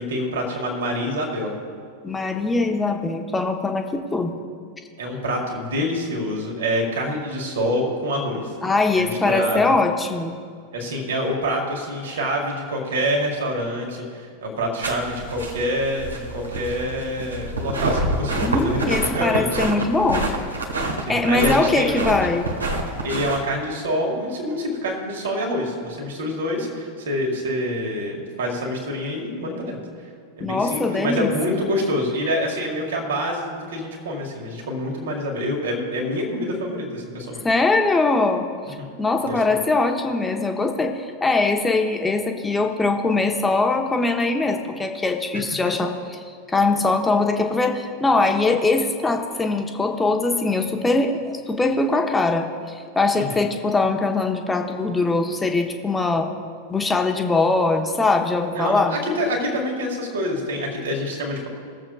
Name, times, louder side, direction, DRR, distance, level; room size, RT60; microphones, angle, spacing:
voice 1, 0.0-1.5 5.0-8.5 8.9-9.7 10.7-19.6 21.1-21.9 23.0-29.8 30.4-37.4 38.8-38.9 39.3-39.6 53.1-53.5 58.5-61.5, equal, 60° right, 0 dB, 2.1 m, -26 dB
voice 2, 2.0-4.4 8.6-10.4 18.4-20.3 21.1-22.5 30.4-31.3 37.4-38.5 39.0-45.9 46.5-52.5 52.9-56.3 56.7-59.0, left 3 dB, 10° left, 4 dB, 1.0 m, -21 dB
sound 1, 14.8-23.5, right 1 dB, 75° right, 1.3 m, -27 dB
22.5 x 7.5 x 2.4 m, 2.1 s
figure-of-eight pair, 90°, 0 cm